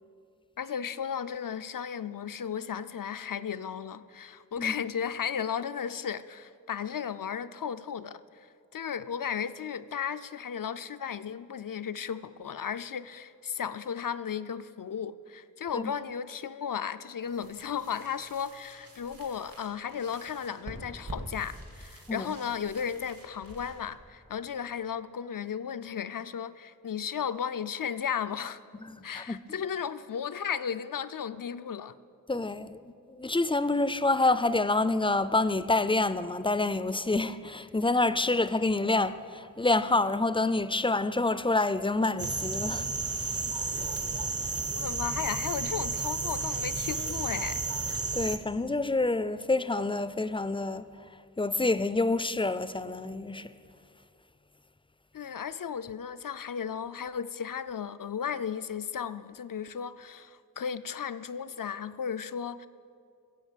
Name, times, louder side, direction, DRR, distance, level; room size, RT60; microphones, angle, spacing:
voice 1, 0.6-8.5 8.7-28.6 29.0-32.0 44.8-47.6 55.1-62.7, left 7 dB, 70° left, 0.5 m, -35 dB
sound 1, 17.2-25.0, right 1 dB, 80° right, 2.8 m, -47 dB
voice 2, 28.8-29.4 32.3-42.9 43.2-43.3 48.1-50.9 51.4-53.5, left 2 dB, 15° left, 0.4 m, -27 dB
sound 2, 42.2-48.4, right 3 dB, 40° right, 0.7 m, -32 dB
15.5 x 7.7 x 7.4 m
wide cardioid pair, 65°, 34 cm